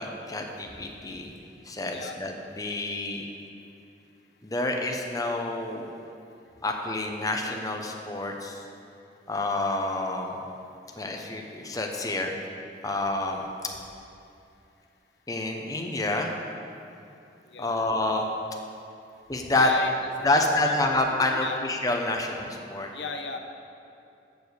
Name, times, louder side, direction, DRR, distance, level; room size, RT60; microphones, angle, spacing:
voice 1, 0.0-1.3 1.6-3.2 4.4-5.9 6.6-8.6 9.3-10.4 11.0-12.3 12.8-13.5 15.3-16.3 17.6-18.3 19.3-19.7 20.2-22.9, left 2 dB, 20° left, 2 dB, 0.8 m, -28 dB
voice 2, 17.5-17.8 19.6-19.9 20.2-20.7 21.1-21.6 22.9-23.4, left 3 dB, 80° left, 5 dB, 0.8 m, -34 dB
7.1 x 7.0 x 8.0 m, 2.7 s
head